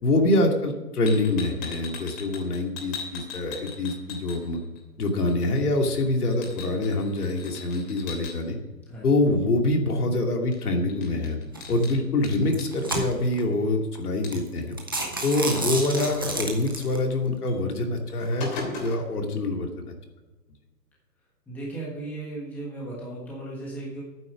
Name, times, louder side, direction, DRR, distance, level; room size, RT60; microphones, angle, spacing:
voice 1, 0.0-4.6 5.0-8.6 9.0-11.4 11.7-14.8 15.2-19.9, left 2 dB, 65° left, 2 dB, 2.7 m, -25 dB
sound 1, 1.1-4.8 5.1-8.3 10.5-10.6 10.9-13.0 14.2-14.6 14.9-15.0 15.3-16.4 17.5-17.6 18.0-19.1, left 4 dB, 25° left, 3.3 m, -39 dB
sound 2, 11.5-11.8 12.4-13.4 14.0-14.1 14.3-14.5 14.8-17.0, right 2 dB, 15° right, 0.6 m, -30 dB
voice 2, 21.5-24.0, right 2 dB, 5° left, -5 dB, 1.4 m, -36 dB
11.5 x 9.4 x 6.3 m, 1.2 s
hypercardioid pair, 165°, 49 cm